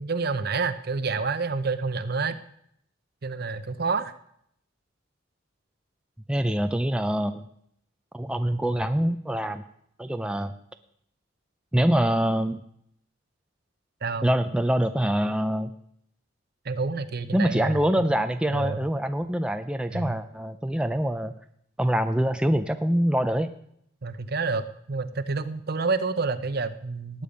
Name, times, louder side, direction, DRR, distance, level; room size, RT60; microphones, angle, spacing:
voice 1, 0.0-2.4 3.2-4.1 14.0-14.3 16.6-18.2 18.5-18.8 19.9-20.2 24.0-27.2, right 4 dB, 50° right, 12 dB, 0.7 m, -29 dB
voice 2, 6.3-7.4 8.1-9.6 10.0-10.5 11.7-12.6 14.2-15.7 17.3-21.3 21.8-23.5, equal, 5° right, 8 dB, 0.4 m, -25 dB
18.5 x 8.6 x 5.2 m, 0.72 s
head